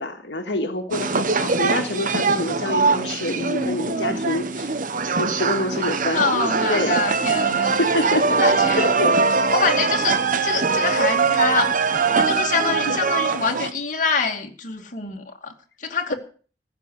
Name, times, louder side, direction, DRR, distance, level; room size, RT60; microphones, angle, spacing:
voice 1, 0.0-4.7 5.2-6.2 6.7-7.0 7.5-8.4 8.8-9.2 12.8-13.0, left 1 dB, 75° left, 1.9 m, -26 dB
sound 1, 0.9-13.7, right 4 dB, 50° right, 1.1 m, -22 dB
voice 2, 3.2-4.3 6.1-8.1 8.4-8.9 9.5-11.7 12.2-15.5 15.8-16.1, left 4 dB, 50° left, 2.5 m, -26 dB
15.0 x 7.0 x 9.8 m
head